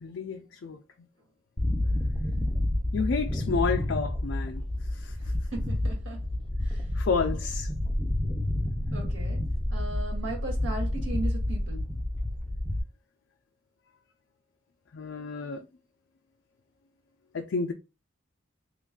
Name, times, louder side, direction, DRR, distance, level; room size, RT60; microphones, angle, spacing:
voice 1, 0.0-0.8 2.9-4.6 4.9-5.2 6.9-7.7 14.9-15.6 17.3-17.7, left 5 dB, 65° left, 0.4 m, -30 dB
sound 1, 1.6-12.8, left 1 dB, 5° left, 0.5 m, -29 dB
voice 2, 5.5-6.2 6.7-6.8 8.9-9.4 9.7-11.8, right 2 dB, 80° right, 1.6 m, -37 dB
3.1 x 2.3 x 3.5 m
head